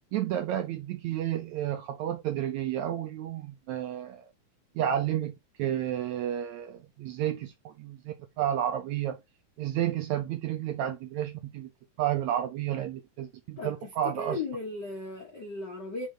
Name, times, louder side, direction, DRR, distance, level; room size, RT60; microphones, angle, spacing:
voice 1, 0.1-4.3 4.7-5.3 5.6-9.2 9.6-11.7 12.0-14.4, right 11 dB, 75° right, 1.7 m, -31 dB
voice 2, 13.6-16.1, left 3 dB, 60° left, 1.1 m, -36 dB
5.4 x 3.7 x 4.8 m
omnidirectional pair, 3.8 m